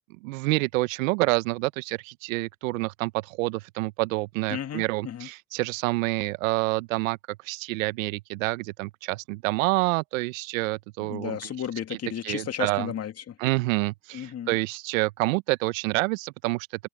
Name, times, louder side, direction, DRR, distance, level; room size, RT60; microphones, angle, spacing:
voice 1, 0.2-7.2 7.4-11.5 12.2-12.9 13.4-16.7, right 23 dB, 75° right, 1.1 m, -27 dB
voice 2, 4.5-5.3 11.0-13.4 14.1-14.6, left 9 dB, 35° left, 2.3 m, -33 dB
hypercardioid pair, 85°, 40 cm